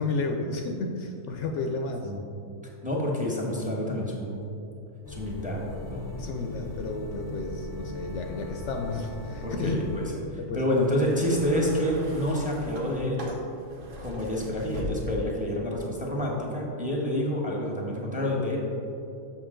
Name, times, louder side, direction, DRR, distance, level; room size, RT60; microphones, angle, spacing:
voice 1, 0.0-2.1 6.1-9.8 10.4-10.6, left 3 dB, 70° left, 3 dB, 0.8 m, -32 dB
voice 2, 2.8-4.4 5.1-6.1 9.4-13.4 14.0-18.6, left 1 dB, 5° right, -2 dB, 0.9 m, -28 dB
sound 1, 5.0-10.1, left 1 dB, 30° left, 0.4 m, -39 dB
sound 2, 10.7-15.5 16.4-16.6, equal, 65° right, 1.2 m, -40 dB
7.3 x 5.9 x 3.7 m, 2.7 s
omnidirectional pair, 1.4 m